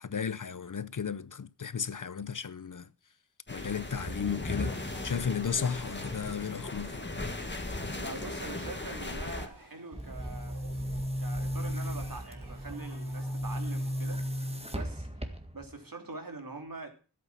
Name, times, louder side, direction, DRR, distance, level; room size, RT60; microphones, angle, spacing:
voice 1, 0.0-2.9 3.5-4.7 5.0-7.0, left 7 dB, 50° left, 0.6 m, -34 dB
sound 1, 3.5-9.5, left 2 dB, 30° left, 1.9 m, -37 dB
sound 2, 5.9-14.8, right 2 dB, 75° right, 4.1 m, -55 dB
voice 2, 8.0-10.6 11.2-14.2 14.7-15.2 15.5-16.9, right 2 dB, 55° right, 2.9 m, -43 dB
Boom, 9.9-15.7, equal, 15° right, 1.8 m, -35 dB
12.5 x 8.5 x 5.8 m
wide cardioid pair, 60°, 39 cm